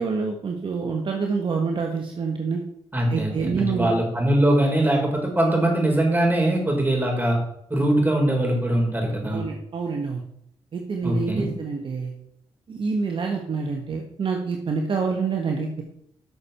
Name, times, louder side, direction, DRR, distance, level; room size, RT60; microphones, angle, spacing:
voice 1, 0.0-2.6 3.1-3.9 9.3-10.2 10.7-12.1 12.7-15.8, right 5 dB, 50° right, 2 dB, 1.5 m, -27 dB
voice 2, 2.9-7.4 7.7-9.4 11.0-11.5, right 1 dB, 15° right, 0 dB, 4.8 m, -22 dB
12.5 x 6.6 x 4.5 m, 0.72 s
supercardioid pair, 65°, 11 cm